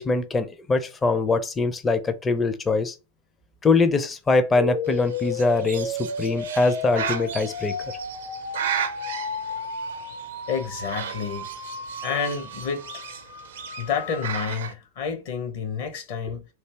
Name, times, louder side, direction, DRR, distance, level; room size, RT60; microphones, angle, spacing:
voice 1, 0.0-2.9 3.6-7.7, left 3 dB, 15° left, 0.6 m, -23 dB
sound 1, 4.6-14.6, left 2 dB, 75° left, 1.6 m, -34 dB
Bird, 4.8-14.7, right 8 dB, 60° right, 0.5 m, -35 dB
voice 2, 10.5-11.5 12.0-12.9 13.8-16.5, left 6 dB, 50° left, 1.1 m, -29 dB
3.2 x 2.7 x 3.3 m
figure-of-eight pair, 90°, 0 cm